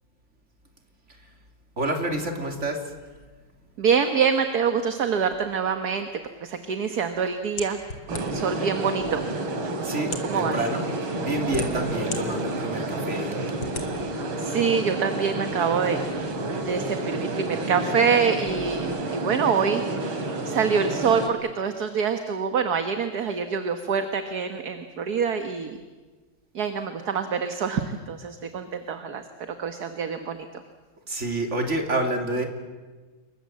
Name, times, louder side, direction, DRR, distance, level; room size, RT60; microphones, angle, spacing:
voice 1, 1.8-2.8 9.8-10.9 11.2-13.4 31.1-32.4, right 1 dB, 35° right, 4 dB, 3.2 m, -28 dB
voice 2, 3.8-6.1 6.4-7.8 8.1-9.2 10.2-10.6 11.9-12.3 14.4-16.0 16.7-19.8 20.5-25.8 26.5-30.6, right 6 dB, 50° right, 8 dB, 1.7 m, -25 dB
sound 1, 7.6-8.6 9.3-9.4 10.0-10.4 11.1-12.2 12.7-12.8 13.6-13.9, left 4 dB, 80° left, 3.5 m, -34 dB
A large crowd of people talking. Short version, 8.1-21.3, right 2 dB, 75° right, 3.5 m, -30 dB
28.5 x 23.0 x 7.7 m, 1.3 s
omnidirectional pair, 2.3 m